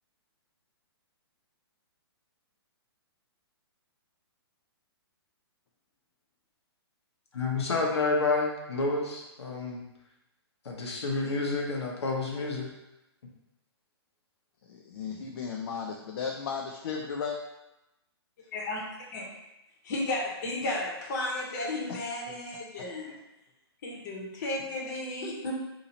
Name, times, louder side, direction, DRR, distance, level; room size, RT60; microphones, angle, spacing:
voice 1, 7.3-9.8 10.6-12.7, left 3 dB, 90° left, -1 dB, 1.0 m, -29 dB
voice 2, 14.6-17.4 21.9-22.0 22.3-22.4, left 6 dB, 60° left, 1 dB, 0.5 m, -35 dB
voice 3, 18.5-18.8 19.1-19.2 19.8-23.1 23.8-25.5, left 2 dB, 45° left, -2 dB, 1.0 m, -33 dB
2.8 x 2.7 x 4.1 m, 0.94 s
hypercardioid pair, 155°, 14 cm